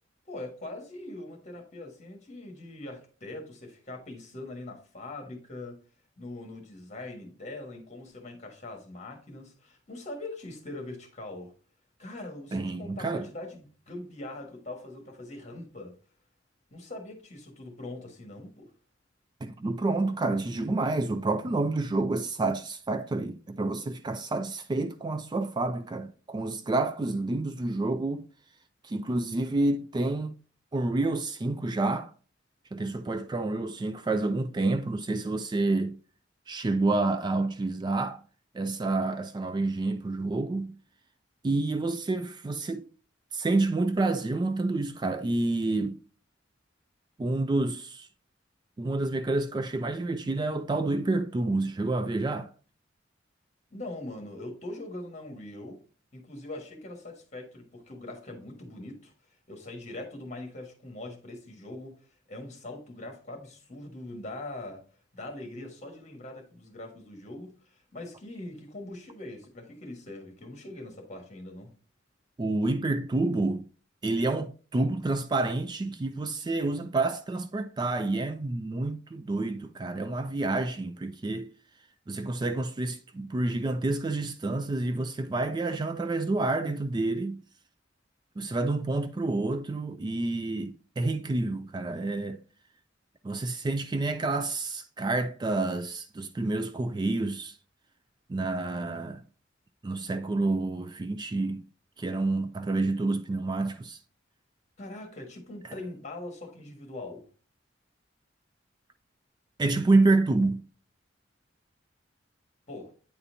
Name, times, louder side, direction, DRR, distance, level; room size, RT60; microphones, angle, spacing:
voice 1, 0.3-5.8 6.2-11.5 12.0-15.9 16.7-18.7 53.7-55.8 56.1-59.1 59.5-64.8 65.1-71.7 104.8-107.3 112.7-112.9, left 2 dB, 40° left, 1.5 m, -42 dB
voice 2, 12.5-13.3 19.4-28.3 28.8-30.3 30.7-32.1 32.7-36.0 36.5-38.2 38.5-40.8 41.4-42.9 43.3-46.0 47.2-48.1 48.8-52.5 72.4-73.6 74.0-81.5 82.1-87.4 88.4-92.4 93.2-97.6 98.3-99.2 99.8-101.6 102.0-104.0 109.6-110.6, right 2 dB, 25° right, 0.3 m, -28 dB
8.9 x 4.2 x 2.7 m
head